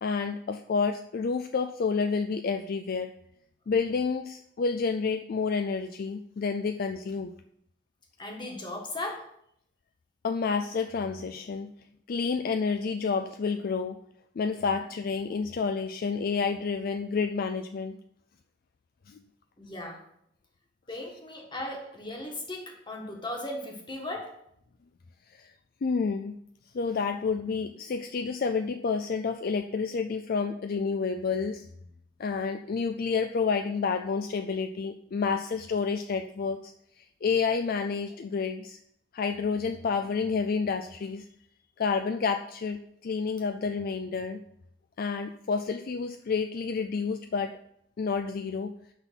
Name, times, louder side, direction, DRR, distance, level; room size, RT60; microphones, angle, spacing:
voice 1, 0.0-3.1 3.7-7.3 10.2-11.7 12.1-14.0 14.4-18.0 19.1-19.2 25.3-25.5 25.8-26.4 26.7-31.7 32.2-36.7 37.0-38.8 39.1-41.3 41.8-44.4 45.0-47.6 48.0-48.7, left 5 dB, 55° left, 7 dB, 0.4 m, -29 dB
voice 2, 8.2-9.3 19.6-20.1 20.9-24.4, left 1 dB, 25° left, 1 dB, 1.5 m, -37 dB
5.9 x 5.5 x 5.9 m, 0.72 s
head